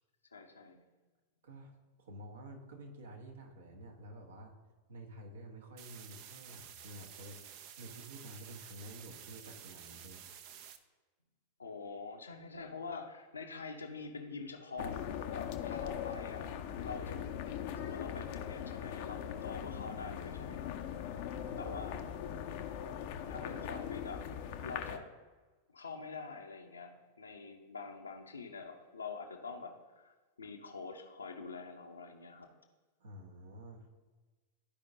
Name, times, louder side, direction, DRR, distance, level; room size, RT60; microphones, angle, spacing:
voice 1, 0.3-0.8 11.6-15.0 15.3-21.1 21.6-21.9 23.3-24.2 24.6-25.1 25.7-30.1 30.4-32.5, left 4 dB, 75° left, 3 dB, 0.9 m, -45 dB
voice 2, 1.4-4.5 4.9-10.2 21.4-21.7 33.0-33.9, right 1 dB, 65° right, 2 dB, 1.3 m, -50 dB
sound 1, 5.8-10.8, right 9 dB, 45° right, 0.6 m, -51 dB
sound 2, 14.8-25.0, left 9 dB, 50° left, 0.6 m, -40 dB
13.0 x 5.0 x 2.7 m, 1.3 s
figure-of-eight pair, 90°, 0 cm